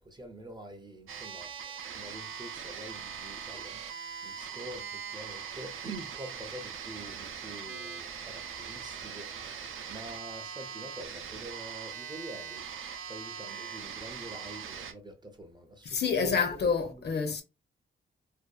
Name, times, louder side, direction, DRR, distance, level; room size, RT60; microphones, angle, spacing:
voice 1, 0.0-3.8 4.2-12.7 13.0-16.4 16.9-17.1, right 1 dB, 20° right, 0.5 m, -46 dB
sound 1, 1.1-14.9, right 7 dB, 75° right, 0.5 m, -41 dB
voice 2, 15.9-17.4, left 5 dB, 50° left, 0.6 m, -28 dB
2.6 x 2.2 x 2.2 m
cardioid pair, 95°, 21 cm